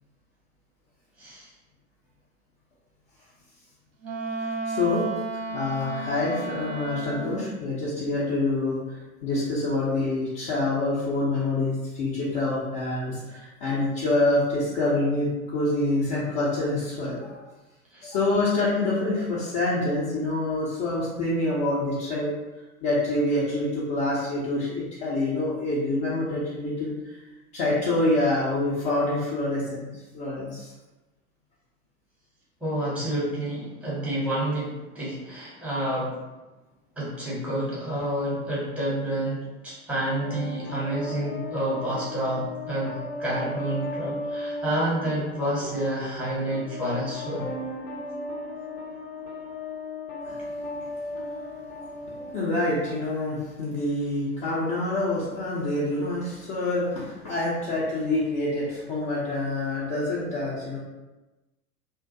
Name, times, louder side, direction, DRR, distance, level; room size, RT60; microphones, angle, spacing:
voice 1, 1.2-1.5 17.9-18.0 32.6-36.1 37.0-47.5, right 1 dB, 5° right, -7 dB, 0.7 m, -29 dB
Wind instrument woodwind instrument, 4.0-7.5, right 3 dB, 60° right, 0.5 m, -32 dB
voice 2, 4.4-5.1 5.5-17.4 18.0-22.3 22.8-27.2 27.5-30.7 50.2-50.3 52.3-60.8, left 2 dB, 25° left, -8 dB, 0.4 m, -26 dB
sound 1, 40.1-53.1, left 2 dB, 85° left, 0.7 m, -36 dB
2.3 x 2.1 x 2.5 m, 1.1 s
figure-of-eight pair, 95°, 44 cm